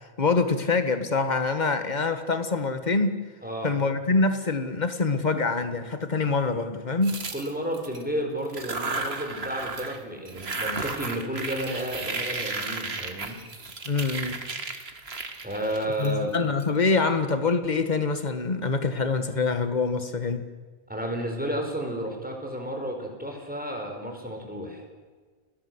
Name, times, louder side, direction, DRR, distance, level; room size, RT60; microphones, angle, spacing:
voice 1, 0.2-3.2 3.6-7.2 13.8-14.4 16.0-20.4, left 4 dB, 45° left, 9 dB, 1.8 m, -25 dB
voice 2, 3.4-3.7 7.3-13.4 15.4-16.3 20.9-24.8, right 1 dB, 10° right, 2 dB, 5.2 m, -32 dB
sound 1, 7.0-8.0 8.4-10.0 10.2-16.6, right 3 dB, 80° right, 2.2 m, -34 dB
29.0 x 18.5 x 8.1 m, 1.5 s
omnidirectional pair, 1.0 m